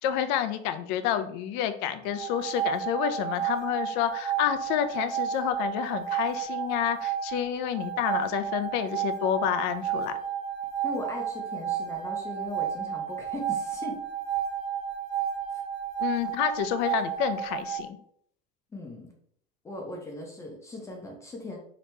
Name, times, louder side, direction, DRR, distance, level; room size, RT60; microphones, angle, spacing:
voice 1, 0.0-10.1 16.0-18.0, left 10 dB, 65° left, 10 dB, 0.4 m, -29 dB
sound 1, 2.0-17.9, right 9 dB, 65° right, 0.5 m, -32 dB
voice 2, 10.8-14.0 15.5-15.6 18.7-19.1 19.6-21.6, left 1 dB, 15° left, 0 dB, 0.5 m, -38 dB
3.0 x 2.8 x 3.2 m, 0.65 s
cardioid pair, 155°, 19 cm